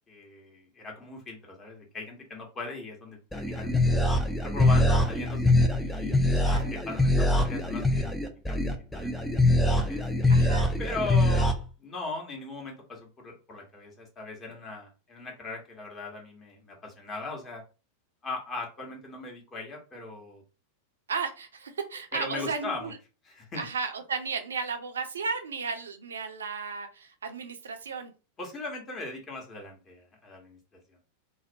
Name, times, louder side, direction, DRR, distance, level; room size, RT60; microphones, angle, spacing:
voice 1, 0.1-3.7 4.4-8.1 8.5-8.6 8.9-9.1 9.9-10.4 10.8-17.6 18.2-20.4 22.1-22.9 23.3-23.6 28.4-30.6, left 3 dB, 20° left, 0 dB, 0.8 m, -39 dB
sound 1, 3.3-11.5, left 1 dB, 5° left, 0.3 m, -24 dB
voice 2, 6.4-6.7 10.3-10.7 21.1-23.0 23.5-28.1, right 5 dB, 70° right, 6 dB, 0.4 m, -34 dB
2.3 x 2.0 x 2.6 m, 0.32 s
figure-of-eight pair, 90°, 0 cm